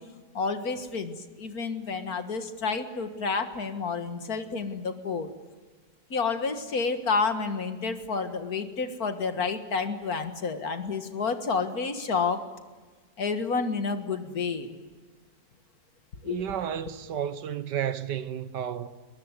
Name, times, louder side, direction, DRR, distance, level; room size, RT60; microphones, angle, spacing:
voice 1, 0.3-5.3 6.1-12.4 13.2-14.8 16.2-16.4, left 4 dB, 60° left, 2.2 m, -30 dB
voice 2, 16.2-18.9, right 9 dB, 80° right, 1.7 m, -32 dB
22.5 x 21.5 x 9.8 m
omnidirectional pair, 1.8 m